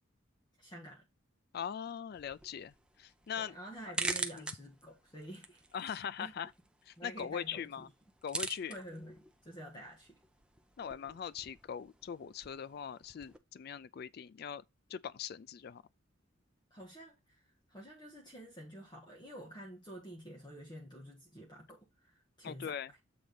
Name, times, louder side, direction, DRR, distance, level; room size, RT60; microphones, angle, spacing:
voice 1, 0.6-1.1 3.4-6.3 7.0-7.9 8.7-10.2 16.7-22.8, right 1 dB, 20° left, 1.6 m, -49 dB
voice 2, 1.5-3.5 4.3-4.4 5.7-6.5 6.9-7.9 8.2-8.7 10.8-14.6 14.9-15.8 22.4-22.9, left 8 dB, 50° left, 0.3 m, -41 dB
sound 1, 2.1-13.4, right 2 dB, 5° right, 0.6 m, -45 dB
7.8 x 3.9 x 5.1 m
head